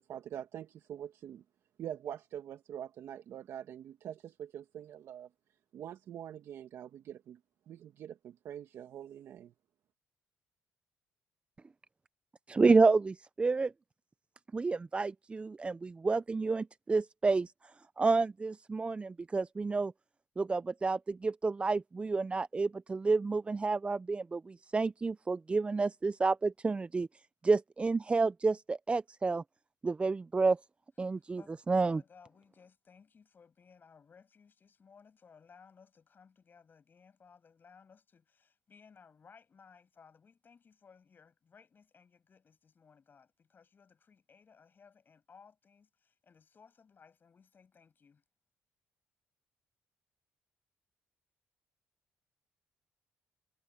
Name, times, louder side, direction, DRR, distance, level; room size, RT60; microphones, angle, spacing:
voice 1, 0.0-1.4 1.8-5.3 5.7-7.4 7.7-9.5, right 10 dB, 70° right, 1.5 m, -44 dB
voice 2, 12.5-13.7 14.5-17.5 18.0-19.9 20.4-27.1 27.4-29.4 29.8-30.6 31.0-31.4 31.7-32.0, right 4 dB, 25° right, 0.4 m, -29 dB
voice 3, 31.0-31.5 31.8-48.2, left 6 dB, 45° left, 6.9 m, -61 dB
cardioid pair, 75°, 5 cm